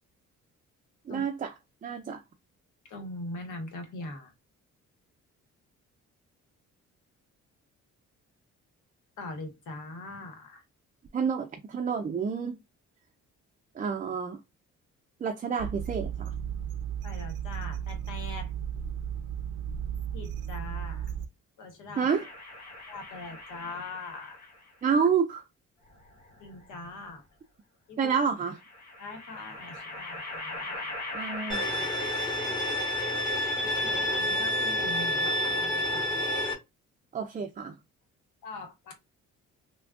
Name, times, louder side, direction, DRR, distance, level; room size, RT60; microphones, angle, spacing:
voice 1, 1.1-1.5 1.8-2.2 11.1-12.6 13.8-14.4 15.2-16.3 22.0-22.3 24.8-25.4 28.0-28.6 31.1-31.9 37.1-37.8, right 6 dB, 25° right, 0.4 m, -29 dB
voice 2, 2.9-4.3 9.2-10.6 17.0-18.5 20.1-21.1 21.6-22.1 22.9-24.4 26.4-27.2 27.9-28.1 29.0-31.0 33.6-36.2 38.4-38.9, left 2 dB, 80° left, 1.1 m, -42 dB
sound 1, 15.6-21.3, right 8 dB, 90° right, 0.5 m, -34 dB
sound 2, 22.1-24.7 25.9-26.9 28.5-34.5, left 2 dB, 65° left, 1.3 m, -42 dB
Bowed string instrument, 31.5-36.5, left 1 dB, 15° left, 1.2 m, -29 dB
3.3 x 2.2 x 2.4 m
cardioid pair, 90°, 30 cm